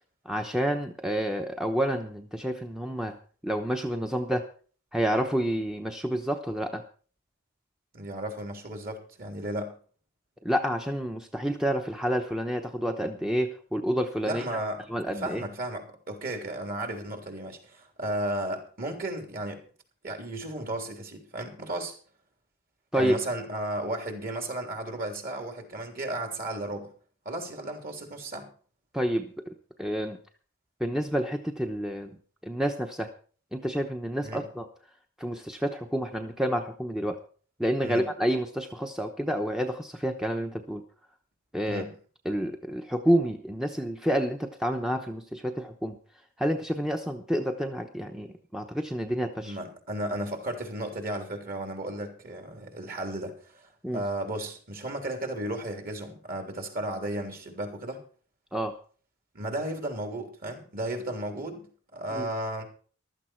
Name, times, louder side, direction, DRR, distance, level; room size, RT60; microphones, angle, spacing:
voice 1, 0.2-3.2 3.4-4.5 4.9-6.8 10.4-14.6 14.9-15.4 22.9-23.1 28.9-29.3 29.8-30.2 30.8-32.2 32.4-33.1 33.5-34.7 35.2-37.2 37.6-40.8 41.5-41.9 42.2-46.0 46.4-49.6 53.8-54.0 58.5-58.7 62.1-62.3, equal, 5° right, 4 dB, 0.9 m, -29 dB
voice 2, 7.9-9.7 14.2-14.8 15.1-19.6 20.0-21.9 22.9-26.9 27.2-28.5 34.2-34.4 37.8-38.0 41.6-41.9 49.4-58.0 59.3-62.6, right 1 dB, 45° right, 4 dB, 3.4 m, -34 dB
15.0 x 12.5 x 4.5 m, 0.42 s
head